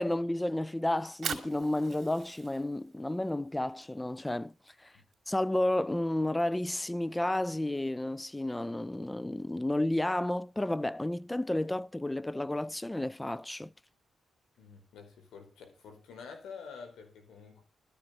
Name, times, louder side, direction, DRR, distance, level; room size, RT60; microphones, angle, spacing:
voice 1, 0.0-4.5 4.8-4.9 5.3-13.7, left 1 dB, 15° left, 0.6 m, -31 dB
Fire, 0.9-7.1, right 7 dB, 60° right, 2.6 m, -45 dB
voice 2, 14.6-17.6, left 5 dB, 85° left, 4.6 m, -48 dB
13.5 x 7.6 x 6.6 m
supercardioid pair, 55°, 0 cm